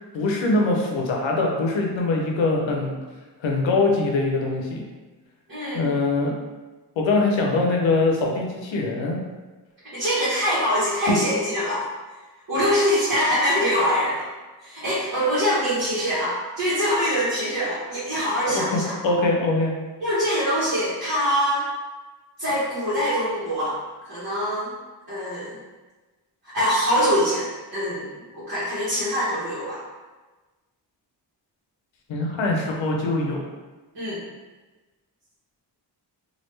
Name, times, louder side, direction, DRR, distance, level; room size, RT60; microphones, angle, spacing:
voice 1, 0.1-3.0 3.4-4.8 5.7-6.3 7.0-9.2 18.5-19.7 32.1-33.5, left 2 dB, 90° left, 0 dB, 0.7 m, -23 dB
voice 2, 5.5-5.8 9.8-11.8 12.5-14.3 14.6-18.9 20.0-21.7 22.4-23.8 24.0-24.7 25.1-25.6 26.5-29.8 33.9-34.2, equal, 50° right, -10 dB, 1.3 m, -24 dB
3.1 x 2.5 x 3.2 m, 1.2 s
cardioid pair, 65°, 44 cm